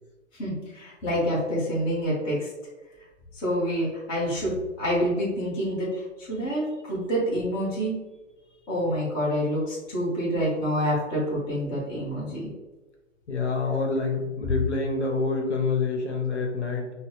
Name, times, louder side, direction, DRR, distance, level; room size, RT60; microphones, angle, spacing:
voice 1, 0.4-2.5 3.3-7.9 8.7-12.5, equal, 10° left, -6 dB, 0.7 m, -27 dB
voice 2, 13.3-16.9, left 4 dB, 60° left, 1 dB, 0.9 m, -27 dB
5.5 x 2.0 x 2.6 m, 1.1 s
figure-of-eight pair, 120°, 38 cm